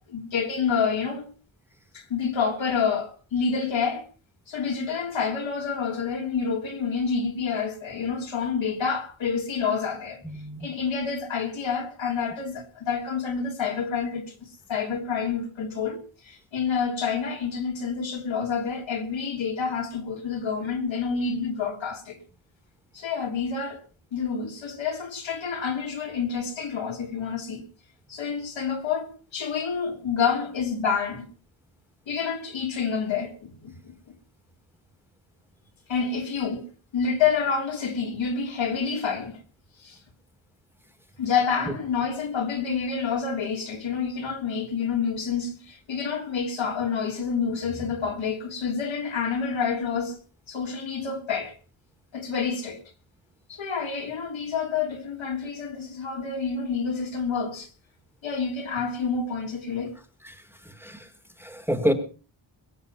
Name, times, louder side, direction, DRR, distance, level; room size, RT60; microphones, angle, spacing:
voice 1, 0.1-1.3 1.9-4.1 4.5-10.2 10.6-14.3 14.7-22.2 22.9-23.8 24.1-27.6 28.1-31.2 32.1-33.9 35.9-36.6 36.9-39.4 39.8-40.0 41.2-50.2 50.5-51.6 52.1-52.8 53.5-57.7 58.2-59.9, left 6 dB, 75° left, 3.4 m, -28 dB
voice 2, 10.2-10.7 60.2-61.1 61.4-61.9, equal, 5° right, 1.5 m, -29 dB
22.0 x 7.5 x 5.6 m
wide cardioid pair, 175°, 46 cm